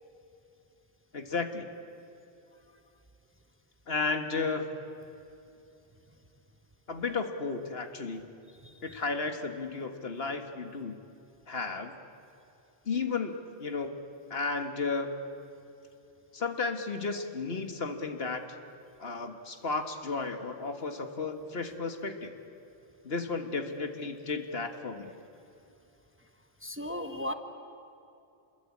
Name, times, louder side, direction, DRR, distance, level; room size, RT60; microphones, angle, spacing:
voice 1, 1.1-1.7 3.9-4.7 6.9-8.2 8.8-11.0 11.5-12.0 12.9-14.0 14.3-15.2 16.3-18.5 19.0-22.3 23.0-25.1, left 4 dB, 70° left, 6 dB, 1.9 m, -33 dB
voice 2, 8.6-9.0 26.6-27.3, left 1 dB, 10° right, 7 dB, 1.1 m, -36 dB
27.5 x 21.5 x 8.6 m, 2.8 s
omnidirectional pair, 1.1 m